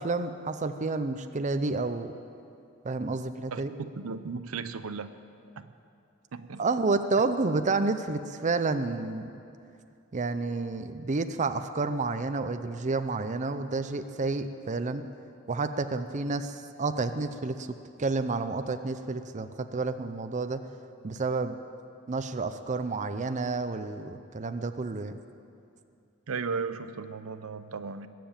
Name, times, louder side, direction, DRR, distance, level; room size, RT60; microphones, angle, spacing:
voice 1, 0.0-2.1 2.8-3.7 6.6-9.3 10.1-15.0 15.5-17.7 18.0-20.6 21.0-21.5 22.1-25.1, right 3 dB, 35° right, 9 dB, 0.6 m, -30 dB
voice 2, 3.5-5.1 5.6-5.7 6.3-6.6 26.3-28.1, right 5 dB, 75° right, 11 dB, 0.6 m, -35 dB
20.5 x 7.7 x 8.8 m, 2.5 s
head